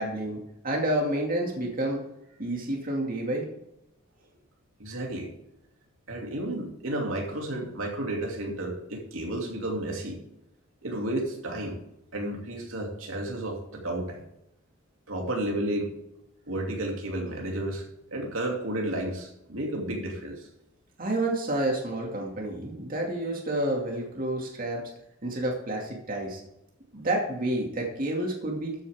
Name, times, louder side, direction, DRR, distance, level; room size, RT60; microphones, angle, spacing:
voice 1, 0.0-2.0 2.4-3.4 21.0-24.8 25.2-26.4 26.9-28.7, right 1 dB, 45° right, -1 dB, 2.4 m, -29 dB
voice 2, 4.8-5.3 6.1-10.2 10.8-11.8 12.1-14.2 15.1-15.9 16.5-20.5, right 1 dB, 75° right, 0 dB, 2.8 m, -32 dB
13.5 x 9.2 x 3.7 m, 0.83 s
head